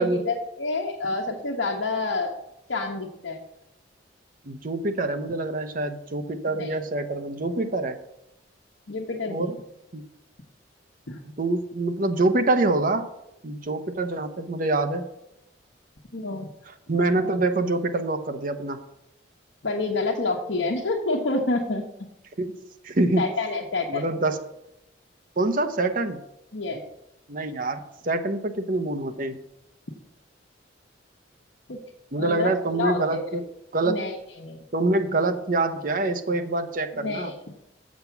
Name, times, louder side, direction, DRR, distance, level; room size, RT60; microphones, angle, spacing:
voice 1, 0.0-2.4 2.7-3.4 6.5-6.8 8.9-9.6 11.1-11.2 16.1-16.5 19.6-21.8 23.2-24.1 26.5-26.8 31.7-31.8 32.2-33.3 33.9-34.6 36.9-37.5, left 3 dB, 80° left, -1 dB, 1.1 m, -28 dB
voice 2, 4.5-8.0 9.3-9.6 9.9-10.0 11.4-13.1 13.4-15.0 16.9-18.8 22.4-22.5 22.8-23.3 23.9-24.4 25.4-26.2 27.3-29.4 32.1-33.4 33.7-34.0 34.7-37.3, right 2 dB, 45° right, 7 dB, 0.8 m, -25 dB
7.3 x 7.0 x 5.9 m, 0.84 s
head